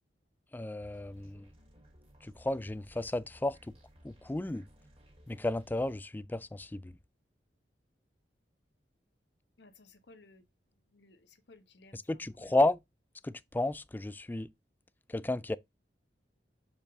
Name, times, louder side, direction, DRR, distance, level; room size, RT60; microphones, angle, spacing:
voice 1, 0.5-1.5 2.2-3.6 4.0-4.7 5.3-7.0 11.9-12.8 13.2-14.5 15.1-15.6, left 2 dB, 10° left, 0.3 m, -32 dB
sound 1, 0.8-6.0, equal, 35° right, 2.4 m, -59 dB
voice 2, 9.6-10.4 10.9-12.6, left 2 dB, 75° left, 1.2 m, -59 dB
6.7 x 5.4 x 3.6 m
head